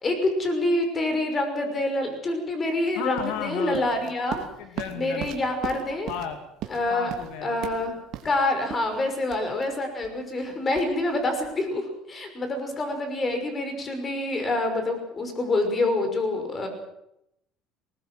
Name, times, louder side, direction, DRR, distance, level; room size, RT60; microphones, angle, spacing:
voice 1, 0.0-4.4 4.9-6.1 6.7-7.1 7.4-7.9 8.2-16.7, left 2 dB, 25° left, 6 dB, 5.9 m, -26 dB
sound 1, 2.8-11.7, right 10 dB, 60° right, 2.8 m, -40 dB
voice 2, 3.0-3.9 4.3-5.3 6.1-6.4 6.9-7.6, left 8 dB, 80° left, 7 dB, 2.3 m, -34 dB
20.0 x 20.0 x 7.8 m, 0.81 s
cardioid pair, 125°, 0 cm